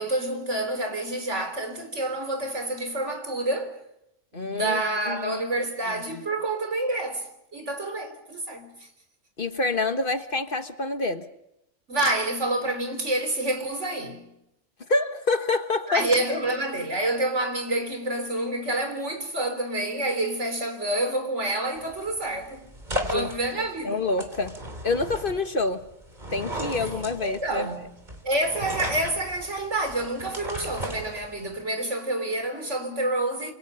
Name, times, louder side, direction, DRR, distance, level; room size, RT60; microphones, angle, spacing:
voice 1, 0.0-3.8 4.3-8.9 11.9-14.3 15.9-22.7 23.1-24.0 27.2-27.9 28.2-33.5, right 1 dB, 75° right, 4.3 m, -28 dB
voice 2, 4.3-4.8 5.1-5.4 9.4-11.3 14.9-16.0 23.0-23.3 23.8-25.8 26.3-27.7, left 3 dB, 50° left, 1.5 m, -27 dB
sound 1, 21.8-31.6, equal, 40° right, 3.5 m, -36 dB
29.5 x 27.0 x 5.7 m
omnidirectional pair, 1.2 m